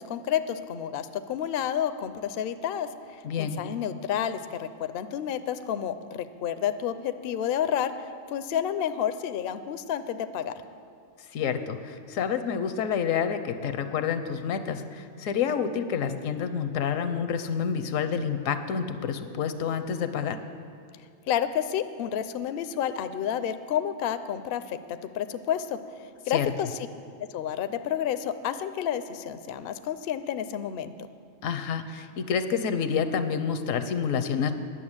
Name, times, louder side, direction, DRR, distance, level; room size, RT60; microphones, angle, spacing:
voice 1, 0.0-2.9 3.4-7.9 8.3-10.5 21.3-24.8 25.1-25.8 26.3-26.7 27.3-30.9, left 9 dB, 60° left, 11 dB, 0.6 m, -30 dB
voice 2, 3.2-3.6 11.3-20.4 26.3-26.5 31.4-34.5, left 7 dB, 80° left, 9 dB, 1.1 m, -28 dB
10.0 x 6.6 x 8.7 m, 2.3 s
omnidirectional pair, 1.3 m